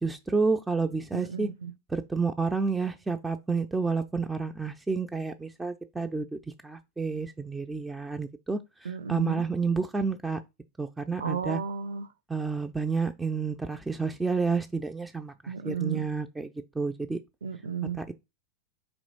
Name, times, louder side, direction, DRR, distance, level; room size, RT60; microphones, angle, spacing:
voice 1, 0.0-1.5 1.9-10.4 10.8-11.6 12.3-16.5 16.7-17.2 18.0-18.1, right 4 dB, 5° right, 0.3 m, -30 dB
voice 2, 1.1-1.7 8.8-9.4 11.2-12.1 15.5-16.1 17.4-18.0, right 6 dB, 65° right, 0.6 m, -33 dB
4.5 x 2.9 x 4.0 m
figure-of-eight pair, 90°, 0 cm